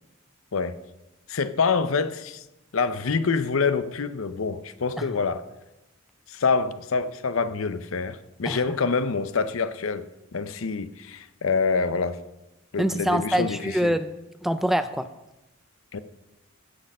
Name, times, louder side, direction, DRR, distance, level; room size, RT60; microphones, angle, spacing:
voice 1, 1.3-2.4 2.7-5.4 6.3-10.0 10.3-12.2 12.7-13.9 15.9-16.0, left 4 dB, 75° left, 0.7 m, -26 dB
voice 2, 12.8-15.1, equal, ahead, 0.3 m, -25 dB
15.5 x 6.6 x 5.4 m
head